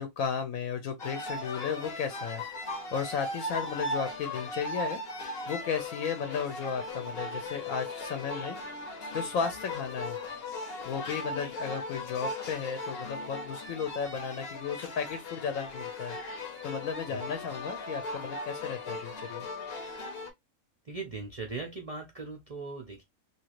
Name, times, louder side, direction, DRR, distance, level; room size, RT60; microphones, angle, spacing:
voice 1, 0.0-2.4 2.9-5.0 5.5-8.6 9.0-10.2 10.8-16.2 16.6-19.4, left 6 dB, 75° left, 1.1 m, -34 dB
sound 1, 1.0-20.3, left 2 dB, 50° left, 0.9 m, -38 dB
voice 2, 20.8-23.0, right 4 dB, 50° right, 0.4 m, -39 dB
2.9 x 2.6 x 3.0 m
omnidirectional pair, 1.5 m